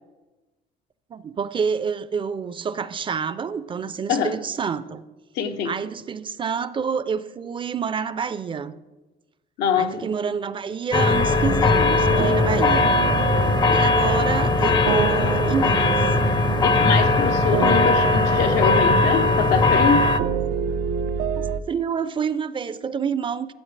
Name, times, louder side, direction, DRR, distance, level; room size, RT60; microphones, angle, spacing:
voice 1, 1.1-5.0 5.6-8.7 9.8-12.9 13.7-16.1 21.4-23.5, right 6 dB, 30° right, 0.4 m, -28 dB
voice 2, 5.3-5.7 9.6-10.1 16.6-20.1, left 6 dB, 85° left, 0.8 m, -24 dB
sound 1, 10.9-20.2, left 3 dB, 25° left, 0.5 m, -19 dB
sound 2, 11.1-21.6, right 7 dB, 90° right, 0.5 m, -28 dB
13.5 x 8.0 x 3.2 m
cardioid pair, 110°, 17 cm